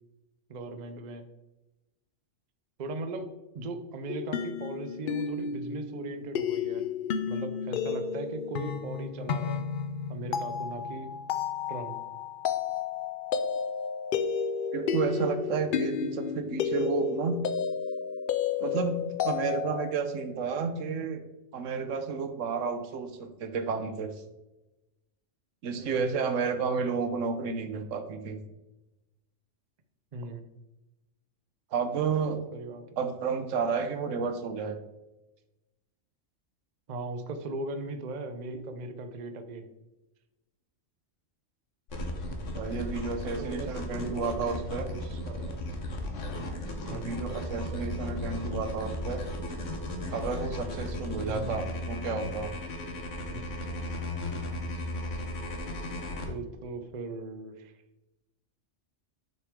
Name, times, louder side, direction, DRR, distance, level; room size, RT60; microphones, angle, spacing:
voice 1, 0.5-1.2 2.8-3.3 3.5-6.8 7.3-9.6 10.1-11.1 11.7-12.0 25.8-26.0 30.1-30.4 32.5-33.0 36.9-39.7 43.2-45.6 46.8-47.2 51.2-51.5 53.3-53.5 56.2-57.7, right 2 dB, 45° right, 8 dB, 0.7 m, -39 dB
sound 1, 4.1-19.9, left 7 dB, 60° left, 0.5 m, -32 dB
voice 2, 14.7-17.4 18.6-21.2 21.5-24.1 25.6-28.4 31.7-32.4 33.0-34.8 42.5-44.9 46.9-49.5 50.1-52.5, right 5 dB, 85° right, 8 dB, 1.2 m, -31 dB
sound 2, 41.9-56.3, left 1 dB, 75° left, 1.5 m, -35 dB
7.4 x 6.2 x 3.6 m, 1.0 s
omnidirectional pair, 1.3 m